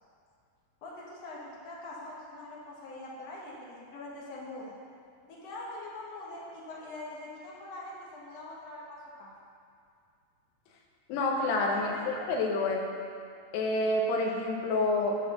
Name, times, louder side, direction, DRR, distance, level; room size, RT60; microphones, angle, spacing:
voice 1, 0.8-4.7 5.3-9.3 11.7-12.1, left 2 dB, 65° left, -4 dB, 1.6 m, -43 dB
voice 2, 11.1-12.9 13.5-15.2, left 2 dB, 85° left, 1 dB, 3.0 m, -28 dB
10.0 x 4.3 x 7.1 m, 2.4 s
omnidirectional pair, 4.6 m